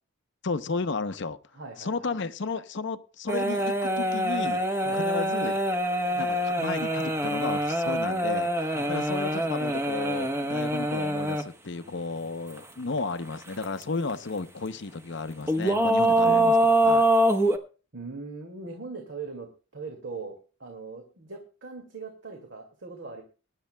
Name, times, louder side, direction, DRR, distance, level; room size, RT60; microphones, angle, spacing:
voice 1, 0.4-1.4 1.8-4.6 4.9-5.6 6.1-17.1, left 3 dB, 60° left, 0.7 m, -33 dB
voice 2, 1.5-2.1 4.8-5.0 8.7-8.9 17.9-23.2, right 4 dB, 60° right, 2.1 m, -40 dB
sound 1, 3.3-11.4 12.6-12.7 13.4-13.8 14.1-14.2 15.5-17.6, right 1 dB, 15° right, 1.0 m, -25 dB
23.0 x 10.5 x 2.2 m
head